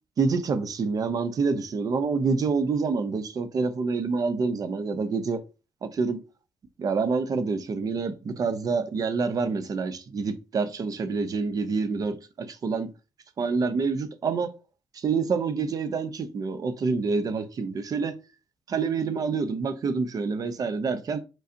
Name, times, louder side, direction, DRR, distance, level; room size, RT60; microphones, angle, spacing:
voice 1, 0.2-5.4 5.8-6.2 6.8-12.9 13.4-14.5 14.9-18.2 18.7-21.2, right 4 dB, 55° right, 0.8 m, -27 dB
4.9 x 3.9 x 2.7 m
cardioid pair, 70°, 7 cm